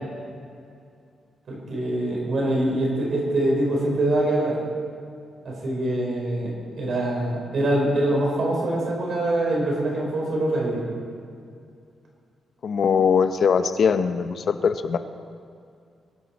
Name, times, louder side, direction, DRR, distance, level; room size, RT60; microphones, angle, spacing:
voice 1, 1.5-4.6 5.4-10.8, right 1 dB, 55° right, -2 dB, 4.0 m, -24 dB
voice 2, 12.6-15.0, left 6 dB, 50° left, 9 dB, 0.8 m, -21 dB
23.0 x 11.5 x 4.2 m, 2.3 s
wide cardioid pair, 155°, 0 cm